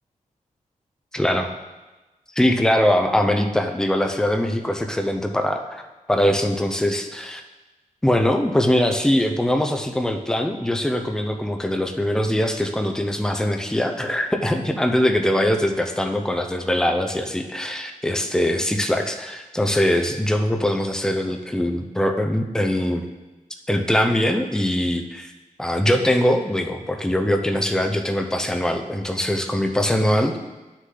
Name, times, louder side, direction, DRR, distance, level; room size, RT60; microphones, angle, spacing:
voice 1, 1.1-1.5 2.4-7.4 8.0-23.1 23.7-25.3 25.6-30.4, left 1 dB, 5° left, 4 dB, 0.6 m, -22 dB
9.5 x 6.4 x 3.9 m, 1.1 s
wide cardioid pair, 140°, 13 cm